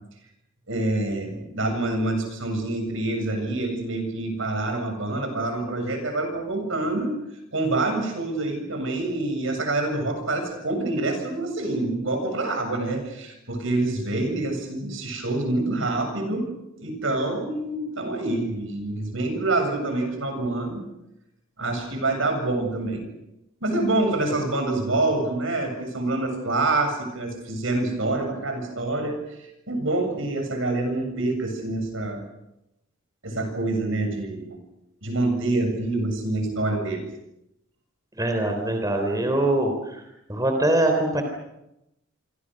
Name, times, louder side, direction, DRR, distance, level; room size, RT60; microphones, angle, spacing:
voice 1, 0.7-7.1 7.5-16.5 16.8-20.8 21.6-23.1 23.6-29.2 29.7-32.2 33.2-34.6 35.0-37.1, right 2 dB, 70° right, 6 dB, 7.5 m, -26 dB
voice 2, 38.1-40.0 40.3-41.2, right 1 dB, 15° right, 4 dB, 3.7 m, -23 dB
27.5 x 25.5 x 6.5 m, 0.87 s
head